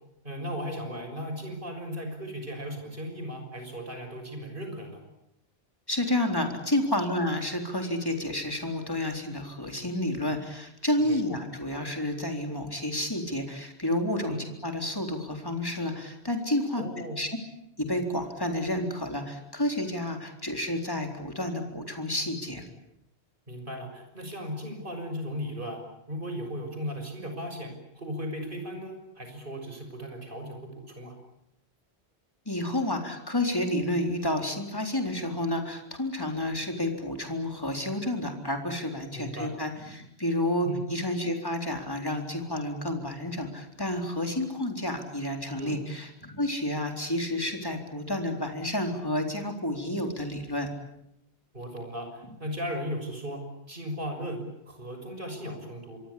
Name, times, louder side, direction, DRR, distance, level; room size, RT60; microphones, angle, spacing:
voice 1, 0.2-5.0 11.0-11.2 14.3-14.4 16.8-17.2 23.5-25.8 26.1-31.1 39.1-39.5 40.6-40.8 45.6-45.8 51.5-53.4 53.7-56.0, equal, 55° right, 5 dB, 6.6 m, -36 dB
voice 2, 5.9-14.4 14.6-16.8 17.2-17.3 17.8-22.6 32.5-50.7, left 1 dB, 20° left, 4 dB, 4.0 m, -30 dB
26.5 x 23.0 x 8.5 m, 0.79 s
omnidirectional pair, 1.1 m